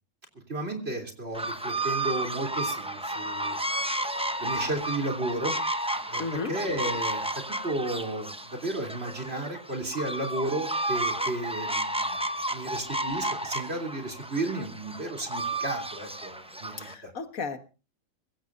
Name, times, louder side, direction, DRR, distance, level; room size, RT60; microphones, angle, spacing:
voice 1, 0.5-3.6 3.9-4.0 4.4-5.7 6.1-7.2 7.6-12.2 12.5-17.1, right 2 dB, 50° right, 3 dB, 3.4 m, -33 dB
sound 1, 1.3-16.9, right 1 dB, 5° right, 0.7 m, -32 dB
voice 2, 6.2-6.5 16.8-17.6, left 4 dB, 85° left, 8 dB, 1.9 m, -34 dB
23.5 x 15.5 x 2.6 m, 0.32 s
omnidirectional pair, 1.4 m